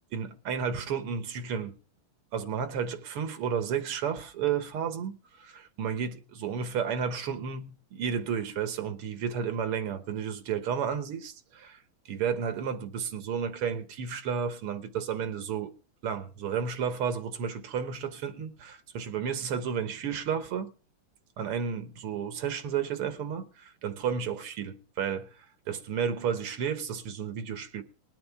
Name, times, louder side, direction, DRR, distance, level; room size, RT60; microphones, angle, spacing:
voice 1, 0.1-1.7 2.3-11.8 12.1-15.7 16.0-20.7 21.4-27.8, right 7 dB, 85° right, 2.0 m, -32 dB
21.0 x 8.7 x 3.5 m
omnidirectional pair, 2.4 m